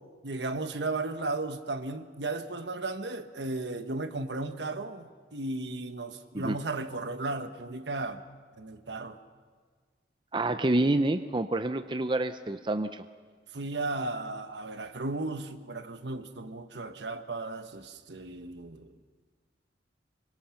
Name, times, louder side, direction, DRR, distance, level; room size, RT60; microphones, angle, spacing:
voice 1, 0.2-8.2 8.6-9.2 13.5-18.9, right 2 dB, 70° right, 8 dB, 1.3 m, -35 dB
voice 2, 10.3-13.0, right 2 dB, 25° right, 10 dB, 0.6 m, -28 dB
26.5 x 23.5 x 5.9 m, 1.5 s
head